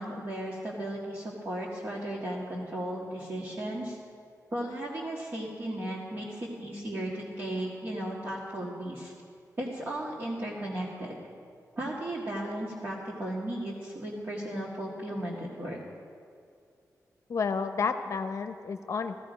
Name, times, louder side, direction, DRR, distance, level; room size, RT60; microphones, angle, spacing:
voice 1, 0.0-4.0 4.5-9.1 9.6-11.2 11.8-15.8, right 1 dB, 35° right, -4 dB, 1.8 m, -35 dB
voice 2, 17.3-19.2, left 5 dB, 55° left, 8 dB, 0.7 m, -31 dB
16.5 x 14.5 x 5.2 m, 2.3 s
wide cardioid pair, 160°, 6 cm